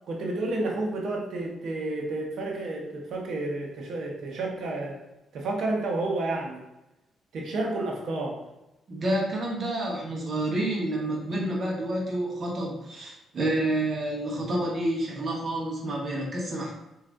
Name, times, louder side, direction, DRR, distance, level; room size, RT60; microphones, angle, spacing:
voice 1, 0.1-5.0 5.3-6.6 7.3-8.4, right 2 dB, 65° right, -1 dB, 1.1 m, -30 dB
voice 2, 8.9-16.7, right 1 dB, 45° right, -3 dB, 1.4 m, -29 dB
4.7 x 3.0 x 2.6 m, 0.94 s
cardioid pair, 90°, 0 cm